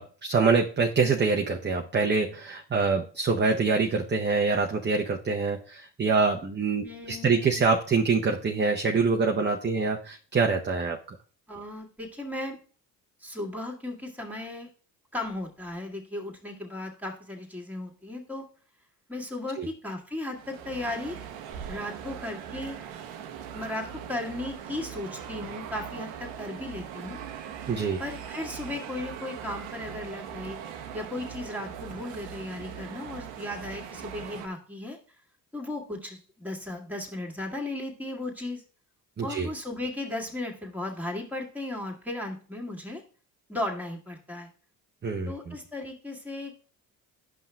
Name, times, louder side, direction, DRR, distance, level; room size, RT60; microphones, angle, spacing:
voice 1, 0.0-11.0 19.6-19.7 27.7-28.0 39.2-39.5 45.0-45.5, right 4 dB, 20° right, 2 dB, 0.7 m, -25 dB
voice 2, 6.8-7.6 11.5-12.6 13.2-14.7 15.1-18.4 19.1-21.2 21.7-22.8 23.5-27.2 28.0-30.6 30.9-35.0 35.5-38.6 39.2-43.0 43.5-44.5 45.2-46.6, left 2 dB, 5° right, -1 dB, 1.9 m, -36 dB
sound 1, 20.3-34.5, right 8 dB, 75° right, 0.9 m, -40 dB
10.5 x 5.5 x 2.3 m, 0.40 s
hypercardioid pair, 60°, 49 cm